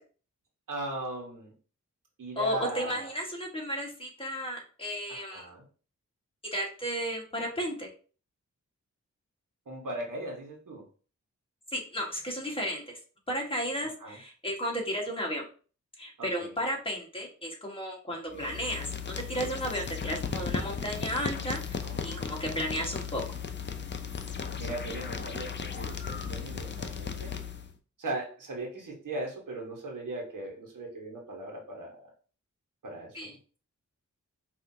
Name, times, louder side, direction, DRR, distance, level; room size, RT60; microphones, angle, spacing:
voice 1, 0.7-1.5 2.2-3.1 5.1-5.6 9.7-10.8 14.0-14.2 16.2-16.5 18.3-18.6 21.8-23.0 24.6-27.3 28.0-32.1 32.8-33.4, right 2 dB, 90° right, -1 dB, 1.3 m, -39 dB
voice 2, 2.3-5.5 6.5-7.9 11.7-13.0 13.3-15.5 16.0-18.9 19.3-23.2 33.1-33.3, equal, 15° left, -1 dB, 1.5 m, -33 dB
sound 1, 18.3-27.7, left 6 dB, 35° left, 0.5 m, -36 dB
5.6 x 2.7 x 2.7 m, 0.38 s
wide cardioid pair, 90°, 31 cm